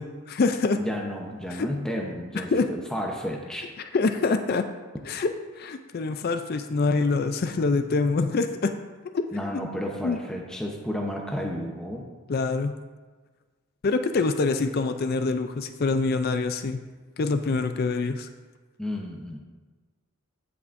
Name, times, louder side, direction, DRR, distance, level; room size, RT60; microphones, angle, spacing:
voice 1, 0.0-0.8 1.5-1.7 2.3-2.7 3.9-4.7 5.1-5.3 5.6-8.7 9.1-9.2 10.0-10.2 12.3-12.7 13.8-16.8 17.2-18.3, left 3 dB, 45° left, 8 dB, 0.4 m, -25 dB
voice 2, 0.8-3.7 9.3-12.1 18.8-19.4, equal, 5° left, -1 dB, 0.8 m, -32 dB
17.5 x 6.0 x 2.6 m, 1.4 s
head